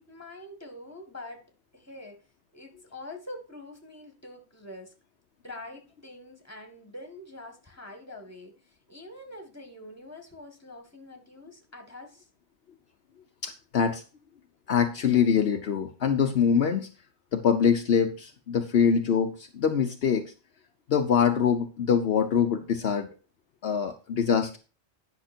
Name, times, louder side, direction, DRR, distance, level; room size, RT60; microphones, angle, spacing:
voice 1, 0.1-1.4 1.7-2.2 2.5-4.9 5.4-12.3, left 1 dB, 15° left, 4 dB, 2.0 m, -45 dB
voice 2, 13.4-14.0 14.7-16.9 17.3-20.3 20.9-23.1 23.6-24.6, left 7 dB, 65° left, 6 dB, 1.0 m, -24 dB
10.0 x 5.9 x 4.4 m, 0.34 s
omnidirectional pair, 1.2 m